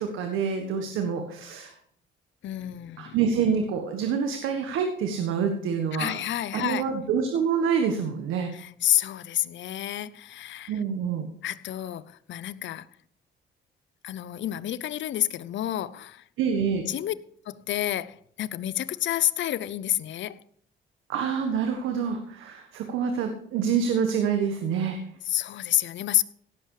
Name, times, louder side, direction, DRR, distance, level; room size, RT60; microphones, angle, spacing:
voice 1, 0.0-1.7 3.0-6.1 6.5-8.5 10.7-11.3 16.4-16.9 21.1-25.0, right 6 dB, 90° right, 1.5 m, -27 dB
voice 2, 2.4-3.2 5.9-6.9 8.5-10.8 11.4-12.9 14.0-16.2 16.9-17.1 17.5-20.4 25.2-26.2, left 12 dB, 70° left, 0.7 m, -29 dB
17.0 x 7.6 x 4.9 m
cardioid pair, 90°, 20 cm